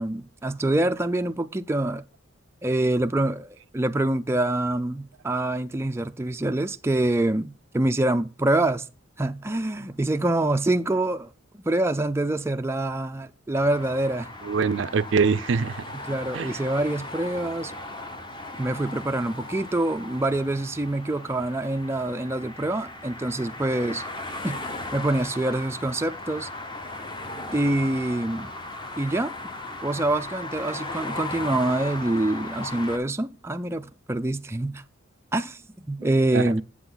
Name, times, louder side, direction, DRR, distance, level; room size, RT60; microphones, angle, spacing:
voice 1, 0.0-2.0 2.6-8.9 9.2-11.3 11.7-14.3 16.1-17.7 18.6-24.0 24.4-24.6 24.9-26.5 27.5-28.5 29.0-29.3 29.8-34.8 35.3-35.6 35.9-36.6, right 1 dB, 15° right, 0.4 m, -25 dB
sound 1, 13.5-33.0, left 2 dB, 25° left, 1.0 m, -37 dB
voice 2, 14.4-15.8 16.3-16.5 36.0-36.6, right 5 dB, 70° right, 0.5 m, -24 dB
7.9 x 7.7 x 3.9 m
head